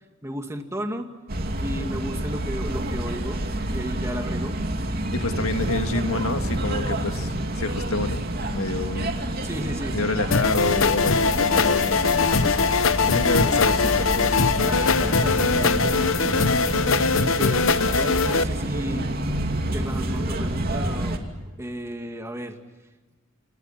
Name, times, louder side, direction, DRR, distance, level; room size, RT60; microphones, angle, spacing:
voice 1, 0.2-1.1 1.6-4.6 9.4-10.0 14.6-16.5 17.2-19.1 19.7-21.2 21.5-22.6, equal, 15° right, 4 dB, 2.2 m, -33 dB
sound 1, 1.3-21.2, right 1 dB, 50° right, 2.8 m, -28 dB
voice 2, 5.1-8.2 8.5-9.1 9.9-12.7 13.0-14.4, left 2 dB, 85° left, 7 dB, 1.8 m, -28 dB
sound 2, 10.3-18.4, left 5 dB, 70° left, 0.9 m, -21 dB
28.5 x 27.5 x 5.8 m, 1.2 s
head